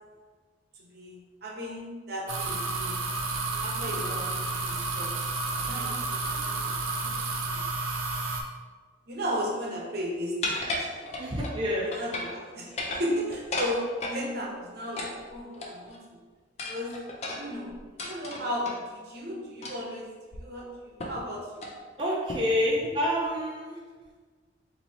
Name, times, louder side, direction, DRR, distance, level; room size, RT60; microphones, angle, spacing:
voice 1, 0.8-2.9 3.6-5.1 5.5-7.2 7.5-7.6 9.1-10.3 10.6-11.1 11.9-12.7 13.0-16.0 16.7-16.9 17.3-17.7 18.0-20.1 20.4-21.7, equal, 55° right, -3 dB, 0.8 m, -35 dB
sound 1, 2.3-8.4, right 3 dB, 90° right, 0.5 m, -31 dB
voice 2, 3.5-3.9 11.2-11.9 22.0-23.8, left 1 dB, 25° right, -5 dB, 0.5 m, -28 dB
sound 2, 10.4-11.6 11.9-12.4 12.7-14.2 15.0-16.0 16.6-18.8 19.6-19.9 20.3-20.4 21.0-21.3 21.5-21.8 22.3-22.6, left 2 dB, 35° left, 0.4 m, -34 dB
3.0 x 2.7 x 4.1 m, 1.4 s
head